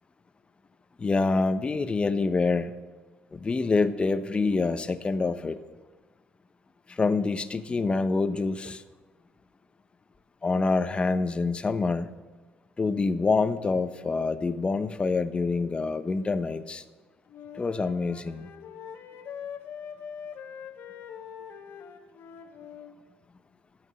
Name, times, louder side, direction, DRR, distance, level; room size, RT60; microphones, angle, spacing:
voice 1, 1.0-2.7 3.3-5.6 6.9-8.8 10.4-12.1 12.8-16.8 17.5-18.5, left 3 dB, 25° left, 12 dB, 0.7 m, -26 dB
Wind instrument woodwind instrument, 17.3-22.9, left 7 dB, 65° left, 1.2 m, -43 dB
12.0 x 6.0 x 7.5 m, 1.2 s
supercardioid pair, 85°, 4 cm